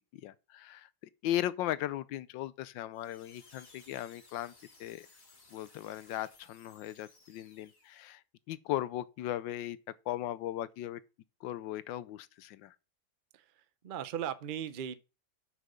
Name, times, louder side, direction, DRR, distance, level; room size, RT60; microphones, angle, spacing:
voice 1, 0.1-0.9 1.2-4.5 4.8-5.1 5.5-8.2 8.5-9.8 10.1-11.0 11.4-12.7, left 13 dB, 85° left, 1.4 m, -37 dB
sound 1, 2.9-8.1, left 3 dB, 45° left, 2.6 m, -60 dB
voice 2, 13.3-15.0, right 9 dB, 75° right, 0.4 m, -38 dB
6.5 x 6.2 x 6.8 m
omnidirectional pair, 2.0 m